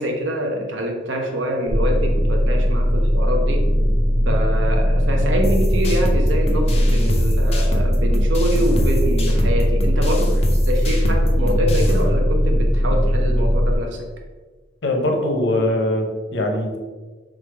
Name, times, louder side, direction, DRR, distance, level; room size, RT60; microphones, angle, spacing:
voice 1, 0.0-3.7 4.2-14.1, equal, 85° right, 3 dB, 0.7 m, -25 dB
sound 1, 1.7-13.7, equal, 15° right, 0.8 m, -18 dB
sound 2, 5.4-12.0, left 1 dB, 35° left, 0.6 m, -29 dB
voice 2, 14.8-16.8, left 1 dB, 70° left, 2 dB, 0.7 m, -21 dB
3.5 x 3.3 x 3.3 m, 1.3 s
head